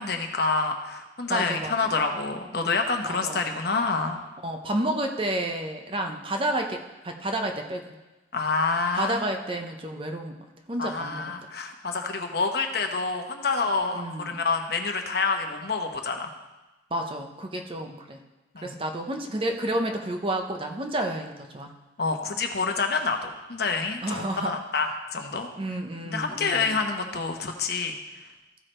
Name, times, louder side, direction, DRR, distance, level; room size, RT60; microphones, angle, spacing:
voice 1, 0.0-4.2 8.3-9.2 10.8-16.3 18.5-18.8 22.0-25.5 26.0-28.0, left 4 dB, 60° left, 4 dB, 0.9 m, -27 dB
voice 2, 1.3-2.0 3.1-3.5 4.4-7.8 8.9-10.4 10.7-11.4 13.9-14.4 16.9-18.2 18.6-21.7 24.0-24.5 25.6-26.8, right 1 dB, 30° right, 4 dB, 0.7 m, -30 dB
14.5 x 4.8 x 4.4 m, 1.1 s
head